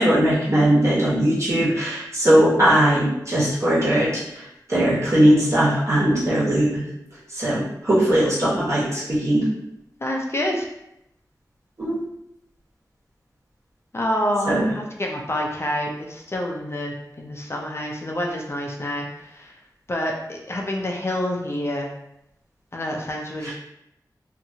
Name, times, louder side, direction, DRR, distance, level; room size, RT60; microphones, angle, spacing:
voice 1, 0.0-4.4 4.7-6.8 7.3-9.5 11.8-12.0 14.4-14.7 23.4-23.5, right 1 dB, 45° right, -8 dB, 1.3 m, -19 dB
voice 2, 10.0-10.7 13.9-19.5 19.9-21.9 22.7-23.5, left 1 dB, 35° left, 0 dB, 0.4 m, -27 dB
2.7 x 2.4 x 2.7 m, 0.81 s
wide cardioid pair, 70°, 7 cm